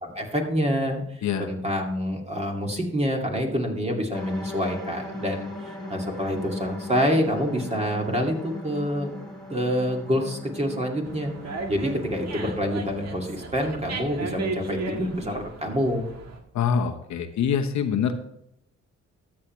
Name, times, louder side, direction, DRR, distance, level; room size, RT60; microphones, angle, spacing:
voice 1, 0.0-9.1 9.5-11.3 11.7-16.1, equal, 20° right, 1 dB, 2.3 m, -27 dB
sound 1, 4.1-12.5, left 1 dB, ahead, 3.3 m, -39 dB
Dog, 11.0-16.4, right 3 dB, 60° right, 1.6 m, -35 dB
voice 2, 16.5-18.1, left 7 dB, 65° left, 6 dB, 1.0 m, -25 dB
13.0 x 7.4 x 3.2 m, 0.77 s
cardioid pair, 90°, 30 cm